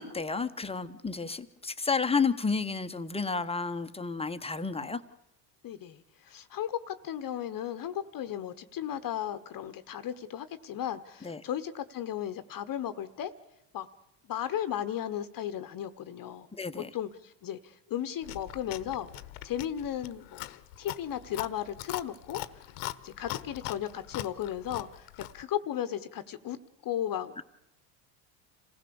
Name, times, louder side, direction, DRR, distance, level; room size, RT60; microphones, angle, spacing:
voice 1, 0.0-5.0 11.2-11.4 16.6-16.9 27.4-27.5, left 4 dB, 10° left, 10 dB, 1.0 m, -31 dB
voice 2, 5.6-13.3 13.7-13.9 14.2-16.5 16.9-19.1 19.4-20.5 20.8-22.7 23.0-25.1 25.3-26.6 26.8-27.4, left 10 dB, 40° left, 11 dB, 1.1 m, -35 dB
Chewing mastication, 18.2-25.4, left 17 dB, 70° left, 1.1 m, -41 dB
27.5 x 16.0 x 7.0 m, 0.81 s
supercardioid pair, 100°, 50 cm